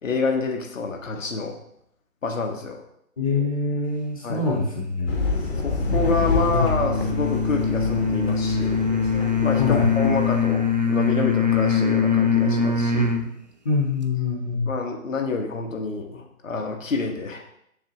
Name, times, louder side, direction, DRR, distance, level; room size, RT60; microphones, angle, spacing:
voice 1, 0.0-1.5 2.2-2.8 4.2-4.4 5.6-8.8 9.4-13.2 14.7-17.4, left 4 dB, 60° left, 3 dB, 1.3 m, -28 dB
voice 2, 3.2-5.2 6.5-6.7 9.6-9.9 13.6-14.8, left 4 dB, 25° left, 0 dB, 0.8 m, -25 dB
sound 1, 5.1-10.4, left 3 dB, 45° left, 1.2 m, -28 dB
sound 2, 5.9-13.3, left 5 dB, 35° right, 0.4 m, -22 dB
7.2 x 6.1 x 2.9 m, 0.75 s
figure-of-eight pair, 145°, 43 cm